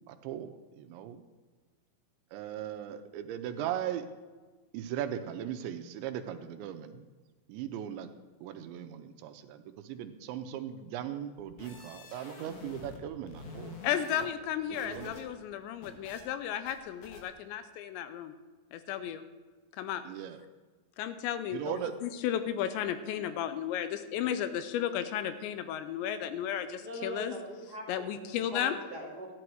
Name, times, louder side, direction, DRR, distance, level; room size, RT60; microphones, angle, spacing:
voice 1, 0.1-1.2 2.3-4.1 4.7-7.1 7.5-8.1 8.4-13.8 14.2-14.3 14.7-15.1 20.0-20.4 21.5-21.9, right 10 dB, 90° right, 7 dB, 3.0 m, -38 dB
sound 1, 11.4-13.0 13.3-15.2 15.5-16.2 16.7-16.8 17.0-17.2, left 3 dB, 60° left, 3.1 m, -47 dB
voice 2, 13.8-18.3 18.7-19.2 19.8-20.0 21.0-27.4 27.9-28.8, left 10 dB, 85° left, 11 dB, 2.9 m, -34 dB
voice 3, 26.8-29.3, equal, 35° right, -4 dB, 1.9 m, -41 dB
14.0 x 11.0 x 4.7 m, 1.3 s
omnidirectional pair, 5.3 m